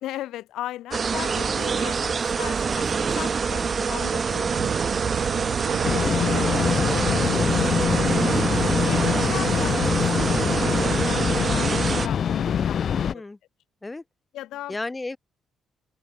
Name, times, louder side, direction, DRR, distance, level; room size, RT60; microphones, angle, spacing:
voice 1, 0.0-2.1 2.4-7.3 7.6-8.0 8.4-8.5 8.8-13.2 14.3-14.8, left 14 dB, 85° left, 1.1 m, -38 dB
sound 1, 0.9-12.1, right 5 dB, 40° right, 0.4 m, -25 dB
sound 2, 4.5-11.2, right 9 dB, 65° right, 1.4 m, -33 dB
sound 3, 5.8-13.1, left 8 dB, 55° left, 0.4 m, -24 dB
voice 2, 7.3-7.8 12.9-13.4 13.8-14.0 14.7-15.2, left 2 dB, 20° left, 2.5 m, -34 dB
open air
cardioid pair, 90°, 0 cm